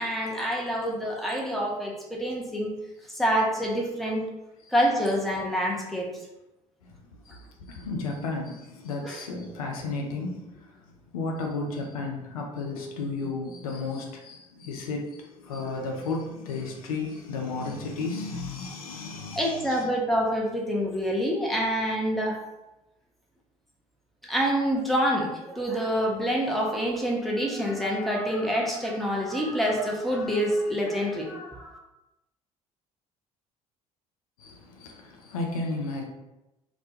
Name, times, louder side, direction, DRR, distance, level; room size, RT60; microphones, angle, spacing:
voice 1, 0.0-2.7 3.1-4.3 4.7-6.1 9.0-9.2 19.3-22.4 24.2-31.8, equal, ahead, -2 dB, 0.6 m, -27 dB
voice 2, 7.3-10.7 11.1-19.8 34.4-36.0, left 3 dB, 75° left, 1 dB, 0.4 m, -33 dB
2.1 x 2.1 x 2.8 m, 0.96 s
figure-of-eight pair, 55°, 18 cm